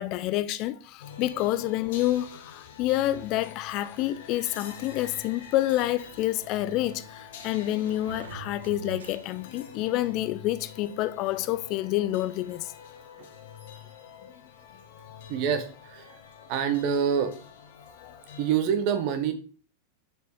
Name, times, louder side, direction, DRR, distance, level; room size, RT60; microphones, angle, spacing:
voice 1, 0.0-12.7 18.0-18.1, left 15 dB, 40° left, 0.4 m, -28 dB
sound 1, 1.0-18.6, left 7 dB, 55° left, 1.2 m, -46 dB
Sliding door, 5.0-9.6, right 7 dB, 65° right, 0.7 m, -47 dB
voice 2, 15.3-16.2 16.5-17.3 18.4-19.3, right 7 dB, 45° right, 1.3 m, -26 dB
6.8 x 5.3 x 4.8 m
figure-of-eight pair, 90°, 0 cm